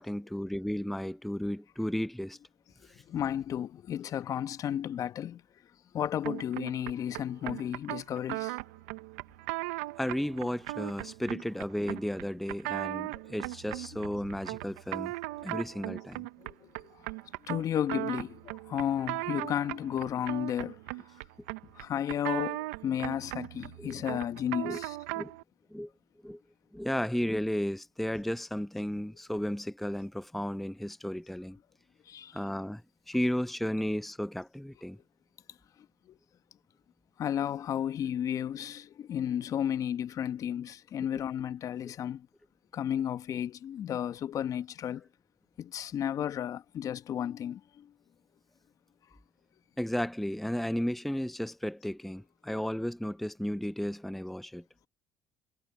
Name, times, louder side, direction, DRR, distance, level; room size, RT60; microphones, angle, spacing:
voice 1, 0.0-2.4 2.9-3.0 10.0-15.1 15.4-16.3 23.8-24.0 24.6-24.8 25.1-25.3 25.7-25.9 26.2-26.4 26.7-31.6 32.3-32.8 33.1-35.0 49.8-54.6, equal, ahead, 0.6 m, -33 dB
voice 2, 3.1-5.4 5.9-8.6 16.4-16.7 17.5-20.8 21.8-25.0 32.1-32.4 37.2-42.3 42.7-45.0 45.6-47.9, left 10 dB, 55° left, 1.1 m, -33 dB
sound 1, 6.2-25.4, right 21 dB, 85° right, 0.7 m, -38 dB
hypercardioid pair, 65°, 7 cm